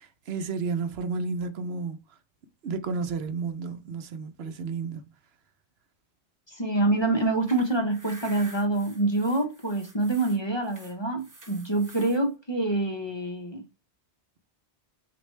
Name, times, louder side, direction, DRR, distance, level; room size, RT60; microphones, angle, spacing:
voice 1, 0.0-2.0 2.6-5.1, right 4 dB, 75° right, 0.9 m, -32 dB
voice 2, 6.5-13.6, right 2 dB, 30° left, 0.7 m, -26 dB
sound 1, 7.2-12.2, right 1 dB, 20° right, 0.8 m, -49 dB
6.4 x 2.5 x 3.1 m
omnidirectional pair, 1.1 m